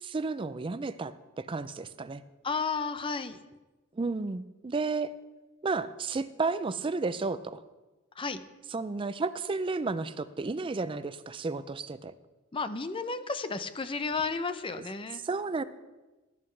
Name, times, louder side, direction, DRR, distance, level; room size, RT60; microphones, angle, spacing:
voice 1, 0.0-2.2 4.0-5.1 5.6-7.6 8.7-12.1 15.2-15.6, right 3 dB, 25° right, 14 dB, 0.3 m, -32 dB
voice 2, 2.4-3.4 8.2-8.4 12.5-15.2, left 4 dB, 25° left, 11 dB, 0.5 m, -32 dB
17.0 x 9.8 x 3.2 m, 1.1 s
head